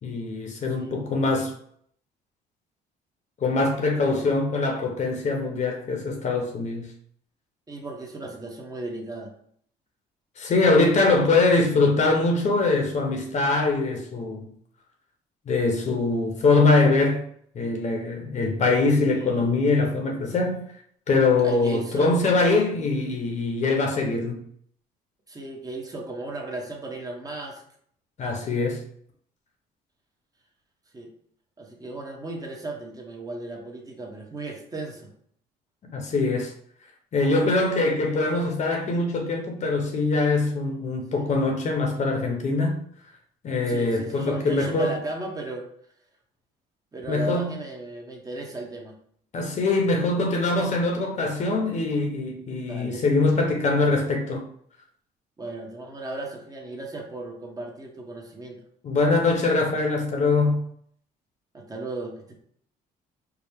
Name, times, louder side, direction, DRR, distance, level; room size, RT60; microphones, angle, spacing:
voice 1, 0.0-1.5 3.4-6.9 10.4-14.5 15.5-17.2 17.5-20.6 21.1-24.4 28.2-28.8 35.8-36.5 37.1-42.8 43.4-44.9 47.1-47.5 49.3-54.5 58.8-60.6, left 3 dB, 45° left, 0.8 m, -23 dB
voice 2, 7.7-9.3 19.1-19.5 21.4-22.2 25.3-27.6 30.9-31.1 31.6-35.1 41.1-41.3 43.7-45.7 46.9-49.0 52.7-53.0 55.4-58.6 61.5-62.3, right 2 dB, 20° right, 0.8 m, -35 dB
4.6 x 2.0 x 3.4 m
cardioid pair, 110°, 17 cm